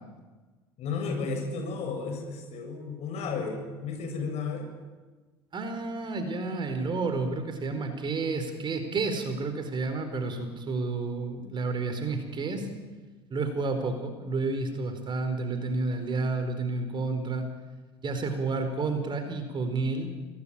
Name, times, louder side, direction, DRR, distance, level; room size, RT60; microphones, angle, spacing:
voice 1, 0.8-4.7, left 4 dB, 50° left, 4 dB, 7.6 m, -33 dB
voice 2, 5.5-12.9 13.3-17.5 18.0-20.1, right 3 dB, 35° right, 7 dB, 4.6 m, -30 dB
26.5 x 19.5 x 9.1 m, 1.3 s
figure-of-eight pair, 70°, 14 cm